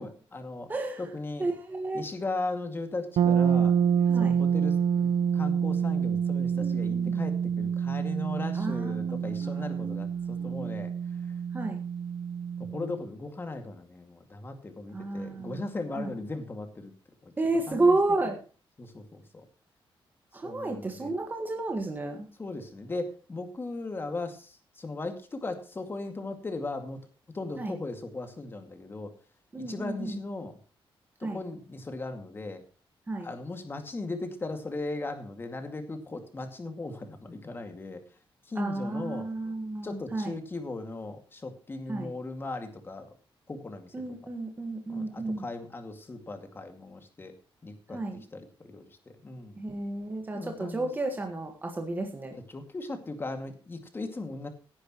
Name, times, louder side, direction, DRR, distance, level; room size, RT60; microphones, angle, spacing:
voice 1, 0.0-0.7 1.0-1.5 1.9-3.8 4.2-10.9 12.7-16.9 17.2-17.3 17.7-18.0 18.8-19.5 20.4-21.1 22.4-27.1 27.3-29.1 29.6-30.6 31.2-32.6 33.2-38.0 38.5-39.3 39.8-43.1 43.5-43.9 44.9-47.3 47.6-49.6 50.3-50.9 52.3-54.5, left 2 dB, 25° left, 6 dB, 2.3 m, -38 dB
voice 2, 0.7-1.0 1.4-2.0 4.1-4.4 6.5-7.2 8.5-10.0 10.3-10.7 11.5-11.8 14.9-15.6 16.0-16.1 17.4-18.4 20.3-22.3 27.6-27.7 29.5-30.2 31.2-31.4 33.1-33.3 38.5-40.3 41.9-42.1 43.9-45.5 47.9-48.2 49.6-52.3, right 2 dB, 20° right, 3 dB, 1.7 m, -31 dB
sound 1, 3.2-12.9, right 7 dB, 85° right, 0.8 m, -27 dB
17.0 x 10.0 x 3.1 m, 0.36 s
wide cardioid pair, 155°, 9 cm